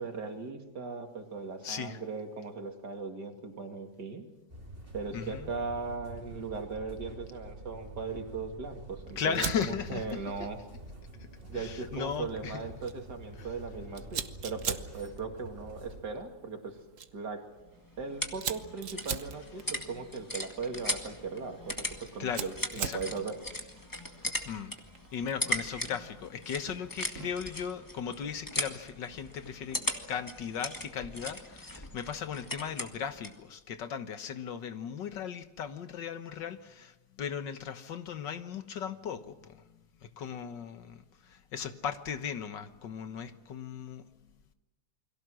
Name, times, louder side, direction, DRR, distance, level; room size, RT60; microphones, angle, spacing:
voice 1, 0.0-4.3 4.9-10.6 11.5-16.8 17.1-17.5 18.0-23.4, right 4 dB, 70° right, 4 dB, 3.0 m, -38 dB
voice 2, 1.6-2.0 5.1-5.5 9.2-10.0 11.5-12.6 13.4-13.5 22.2-22.5 22.8-23.0 24.5-24.7 25.1-29.8 30.1-39.7 40.2-44.0, left 7 dB, 85° left, 10 dB, 1.9 m, -37 dB
sound 1, 4.5-16.0, right 1 dB, 30° right, 3.2 m, -47 dB
Fire, 9.3-27.5, right 7 dB, 50° right, 1.3 m, -44 dB
sound 2, 17.6-33.4, left 1 dB, 10° left, 1.8 m, -39 dB
29.0 x 22.5 x 6.3 m, 1.0 s
omnidirectional pair, 1.9 m